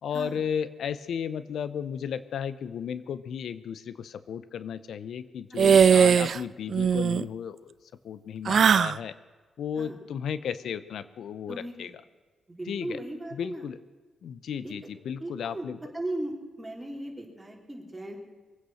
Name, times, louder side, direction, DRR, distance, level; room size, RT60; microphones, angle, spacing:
voice 1, 0.0-7.7 8.0-9.1 9.6-11.9 12.7-13.0 13.3-13.8 14.2-15.8, left 8 dB, 75° left, 15 dB, 0.6 m, -34 dB
voice 2, 5.5-6.0 9.8-10.0 11.5-11.9 12.6-13.7 14.6-14.7 15.2-15.7 15.9-18.2, right 1 dB, 15° right, 0 dB, 3.7 m, -37 dB
sound 1, 5.6-6.4 6.7-7.2 8.4-9.0, right 7 dB, 60° right, 0.4 m, -19 dB
22.5 x 9.1 x 6.3 m, 1.4 s
cardioid pair, 90°, 0 cm